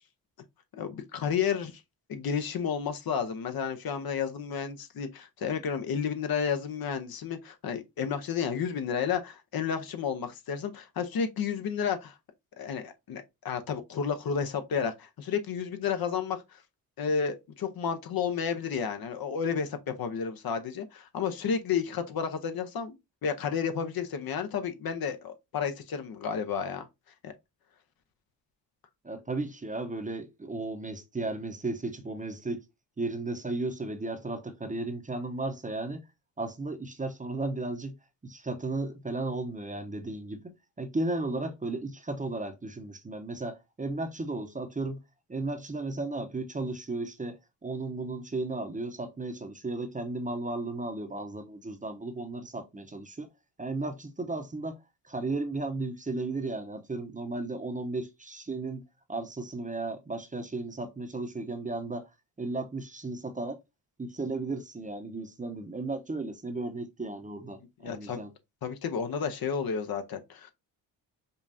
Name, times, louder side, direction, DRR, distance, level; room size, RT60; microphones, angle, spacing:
voice 1, 0.7-1.8 2.1-12.1 12.6-16.6 17.0-23.0 23.2-26.9 27.2-27.3 67.8-68.2 68.6-70.5, left 6 dB, 55° left, 0.8 m, -31 dB
voice 2, 29.0-32.6 33.0-36.0 36.4-37.9 38.2-45.0 45.3-53.3 53.6-54.7 55.1-58.8 59.1-62.1 62.4-63.6 64.0-68.3, right 2 dB, 20° right, 0.8 m, -35 dB
5.4 x 2.4 x 2.6 m
cardioid pair, 75°, 44 cm